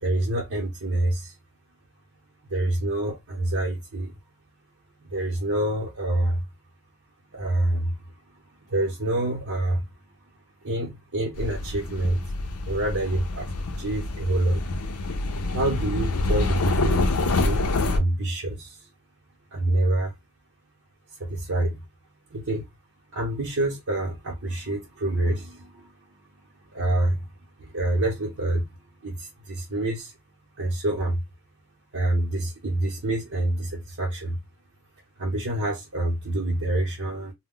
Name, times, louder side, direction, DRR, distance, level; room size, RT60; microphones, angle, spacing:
voice 1, 0.0-1.4 2.5-4.1 5.0-6.4 7.3-8.0 8.7-9.9 10.6-12.3 12.6-13.5 13.8-14.6 15.5-18.9 19.5-20.1 21.2-21.8 22.3-22.7 23.1-25.9 26.7-27.3 27.6-28.7 29.0-30.1 30.6-31.2 31.9-34.4 35.2-37.3, right 1 dB, 65° right, 0.8 m, -27 dB
sound 1, 11.3-18.0, left 2 dB, 80° left, 0.5 m, -26 dB
2.2 x 2.1 x 3.7 m
head